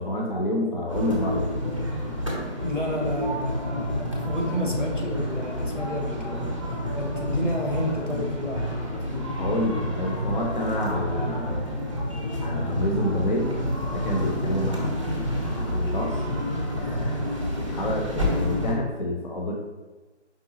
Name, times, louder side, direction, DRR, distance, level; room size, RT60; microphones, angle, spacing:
voice 1, 0.0-1.5 9.4-11.7 12.4-13.5 13.9-16.2 16.7-19.5, left 1 dB, 40° left, -1 dB, 0.6 m, -29 dB
sound 1, 0.9-18.7, left 1 dB, 25° right, 0.6 m, -29 dB
voice 2, 2.6-6.5 6.9-9.3, equal, 90° left, 0 dB, 1.4 m, -31 dB
4.8 x 3.4 x 2.8 m, 1.2 s
figure-of-eight pair, 150°, 36 cm